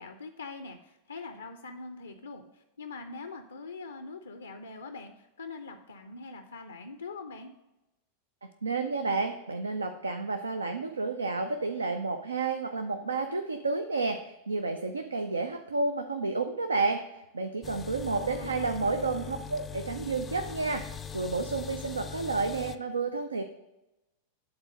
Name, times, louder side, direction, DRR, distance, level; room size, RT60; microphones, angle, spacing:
voice 1, 0.0-7.5 18.1-19.4, left 3 dB, 75° left, 7 dB, 0.5 m, -43 dB
voice 2, 8.6-23.4, right 3 dB, 75° right, 6 dB, 0.4 m, -31 dB
sound 1, 17.6-22.8, left 6 dB, 20° left, 0.4 m, -41 dB
8.8 x 4.0 x 5.1 m, 0.96 s
figure-of-eight pair, 90°, 0 cm